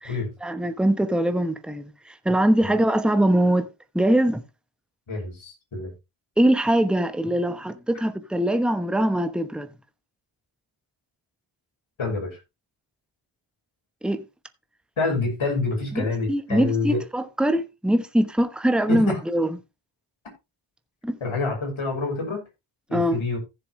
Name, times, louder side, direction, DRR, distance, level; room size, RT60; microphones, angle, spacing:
voice 1, 0.4-3.7 3.9-4.4 6.4-9.7 14.0-14.2 15.9-19.6 21.0-21.2 22.9-23.2, right 1 dB, ahead, 1.0 m, -22 dB
voice 2, 5.1-5.9 12.0-12.4 15.0-17.0 18.9-19.2 21.2-22.4 22.9-23.4, left 3 dB, 70° left, 6.1 m, -27 dB
15.0 x 6.9 x 3.1 m
cardioid pair, 75°, 49 cm